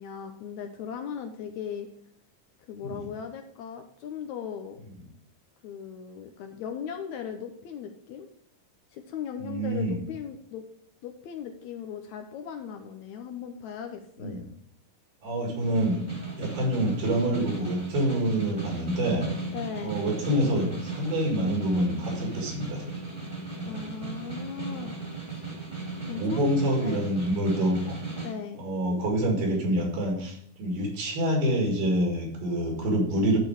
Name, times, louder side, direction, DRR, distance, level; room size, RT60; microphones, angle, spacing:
voice 1, 0.0-1.9 2.7-4.8 5.6-8.3 8.9-10.6 11.0-14.5 19.5-19.9 23.7-25.0 25.3-25.5 26.1-26.5 26.8-27.0 28.2-28.6, left 8 dB, 80° left, 5 dB, 1.7 m, -38 dB
voice 2, 9.4-10.0 14.2-14.4 15.2-16.0 16.4-19.2 19.8-23.1 23.6-23.8 26.1-28.0 28.6-33.4, right 1 dB, 80° right, 0 dB, 3.7 m, -27 dB
Snare drum, 15.6-28.3, right 4 dB, 20° right, 1.5 m, -36 dB
12.0 x 4.4 x 4.7 m, 0.69 s
omnidirectional pair, 3.9 m